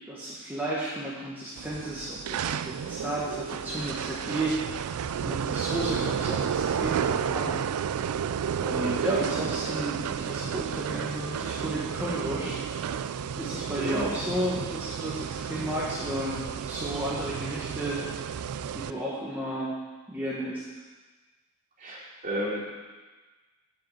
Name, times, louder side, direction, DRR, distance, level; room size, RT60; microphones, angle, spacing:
voice 1, 0.1-4.8 5.2-7.6 8.6-12.6 13.4-16.4 16.7-18.0 18.7-19.8 20.1-20.6, right 1 dB, 10° right, -8 dB, 1.4 m, -33 dB
sound 1, 1.6-18.9, right 7 dB, 80° right, 0.3 m, -32 dB
voice 2, 13.8-14.2 21.8-22.6, equal, 40° right, -5 dB, 2.8 m, -33 dB
10.0 x 5.3 x 7.2 m, 1.3 s
head